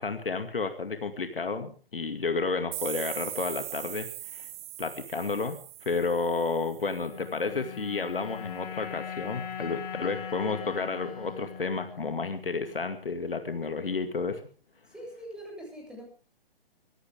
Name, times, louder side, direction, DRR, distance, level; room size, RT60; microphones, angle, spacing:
voice 1, 0.0-4.5 4.8-14.4, left 4 dB, 70° left, 8 dB, 2.3 m, -31 dB
sound 1, 2.7-7.4, right 13 dB, 20° right, 1.9 m, -40 dB
sound 2, 6.9-13.3, left 8 dB, 40° left, 4.1 m, -40 dB
voice 2, 10.0-10.8 14.9-16.0, right 1 dB, 5° right, 0 dB, 7.7 m, -44 dB
23.0 x 16.0 x 3.6 m, 0.38 s
figure-of-eight pair, 125°, 30 cm